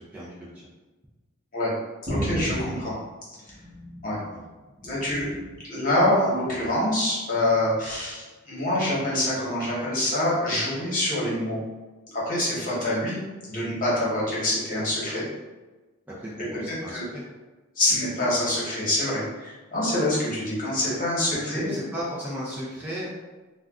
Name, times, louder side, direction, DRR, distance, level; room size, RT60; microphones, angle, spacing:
voice 1, 0.1-0.7 4.3-4.5 16.2-17.2 21.5-23.1, equal, 10° right, -8 dB, 0.4 m, -35 dB
voice 2, 2.1-2.9 4.0-4.2 4.8-5.3 5.6-11.6 12.1-13.2 13.4-15.2 16.7-17.0 17.7-21.7, left 1 dB, 40° left, -7 dB, 1.0 m, -25 dB
sound 1, 2.1-4.3 4.7-5.6 6.5-6.8 7.8-8.0, equal, 30° right, 0.8 m, -34 dB
2.5 x 2.2 x 3.5 m, 1.2 s
head